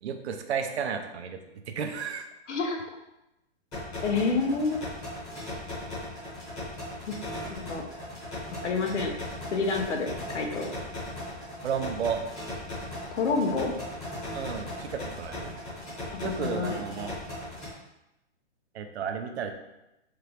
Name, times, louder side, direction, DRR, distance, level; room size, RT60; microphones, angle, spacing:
voice 1, 0.0-1.4 1.7-2.3 11.6-12.2 14.3-15.5 16.2-17.1 18.7-19.5, right 7 dB, 70° right, 6 dB, 0.6 m, -32 dB
voice 2, 2.5-2.8 4.0-4.9 7.1-7.2 7.5-7.8 8.6-9.1 9.5-10.7 13.1-13.7 16.1-16.8, left 4 dB, 90° left, 3 dB, 0.9 m, -28 dB
sound 1, 3.7-17.7, left 1 dB, 10° left, 1.1 m, -38 dB
4.6 x 2.5 x 3.3 m, 0.91 s
hypercardioid pair, 170°, 34 cm